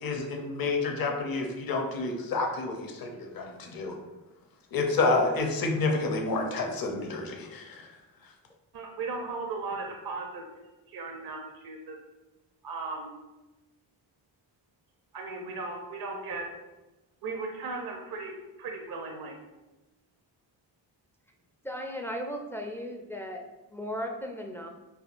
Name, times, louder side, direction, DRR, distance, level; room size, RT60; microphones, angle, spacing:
voice 1, 0.0-3.9 4.7-7.8, left 3 dB, 50° left, 2 dB, 0.7 m, -29 dB
voice 2, 8.7-10.4 10.9-12.0 12.6-13.2 15.1-16.4 17.2-19.4, right 3 dB, 50° right, 1 dB, 0.6 m, -36 dB
voice 3, 21.6-23.4 23.7-24.7, equal, 5° left, 2 dB, 0.3 m, -36 dB
3.5 x 2.2 x 2.5 m, 1.1 s
supercardioid pair, 40°, 48 cm